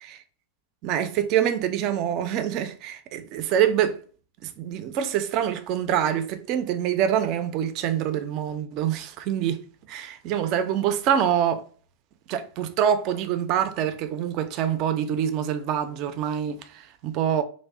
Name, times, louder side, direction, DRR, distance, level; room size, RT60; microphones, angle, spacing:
voice 1, 0.8-4.0 4.4-9.6 9.9-11.6 12.3-17.4, right 9 dB, 40° right, 0.3 m, -25 dB
2.5 x 2.1 x 3.4 m
figure-of-eight pair, 90°, 0 cm